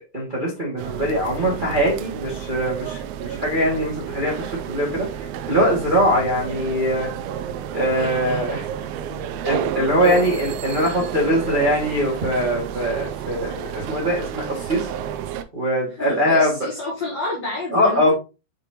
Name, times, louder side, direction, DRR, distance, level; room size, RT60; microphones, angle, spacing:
voice 1, 0.1-5.1 5.5-7.1 7.7-8.6 9.4-14.9 15.5-16.5 17.7-18.1, equal, 70° right, -3 dB, 0.4 m, -22 dB
sound 1, 0.8-15.4, right 9 dB, 90° right, 2.2 m, -31 dB
voice 2, 15.9-18.1, left 2 dB, 60° left, -2 dB, 1.8 m, -28 dB
7.0 x 5.2 x 3.0 m, 0.29 s
omnidirectional pair, 5.1 m